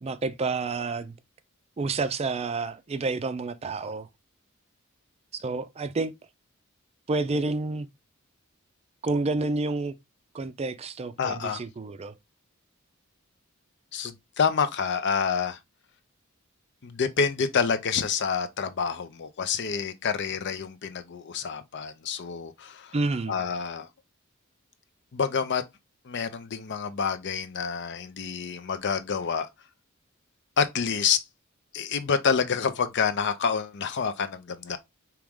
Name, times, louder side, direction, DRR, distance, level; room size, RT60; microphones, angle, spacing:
voice 1, 0.0-1.2 1.8-4.1 5.3-6.1 7.1-7.9 9.0-10.0 10.3-12.1 22.9-23.4, right 3 dB, 30° right, 0.4 m, -29 dB
voice 2, 11.2-11.6 13.9-15.6 16.8-22.9 23.3-23.9 25.1-25.6 26.1-29.5 30.6-31.2 31.7-34.8, left 6 dB, 55° left, 0.6 m, -28 dB
4.7 x 3.0 x 3.5 m
head